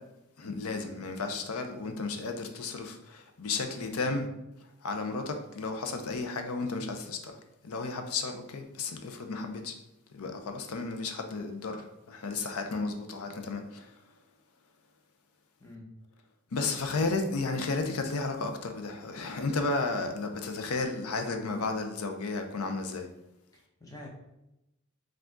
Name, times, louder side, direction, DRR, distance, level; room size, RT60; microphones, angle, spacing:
voice 1, 0.4-4.3 4.8-9.8 10.1-13.9 16.5-23.1, left 3 dB, 85° left, 0.6 m, -33 dB
voice 2, 3.6-4.2 15.6-15.9 23.5-24.1, left 1 dB, 15° left, 0.9 m, -47 dB
4.7 x 2.5 x 3.7 m
head